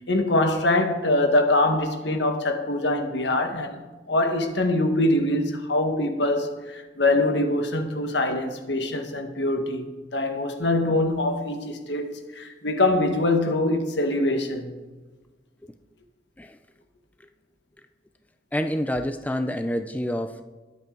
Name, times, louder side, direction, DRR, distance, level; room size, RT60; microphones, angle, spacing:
voice 1, 0.1-3.8 4.1-14.8, left 2 dB, 70° left, 1.6 m, -24 dB
voice 2, 18.5-20.4, equal, 10° left, 0.5 m, -28 dB
21.5 x 8.1 x 3.9 m
head